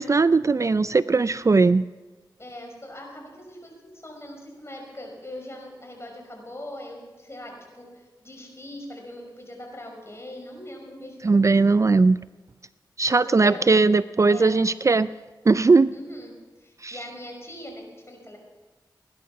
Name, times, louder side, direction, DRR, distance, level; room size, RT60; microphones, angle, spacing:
voice 1, 0.0-1.9 11.2-12.2 13.0-15.1 15.5-15.9 16.8-16.9, right 3 dB, 40° right, 16 dB, 0.4 m, -19 dB
voice 2, 2.4-7.9 8.2-11.8 13.1-13.9 14.3-14.6 15.9-16.3 16.6-18.4, left 1 dB, 30° left, 2 dB, 5.4 m, -41 dB
19.0 x 11.0 x 6.1 m, 1.2 s
cardioid pair, 45°, 8 cm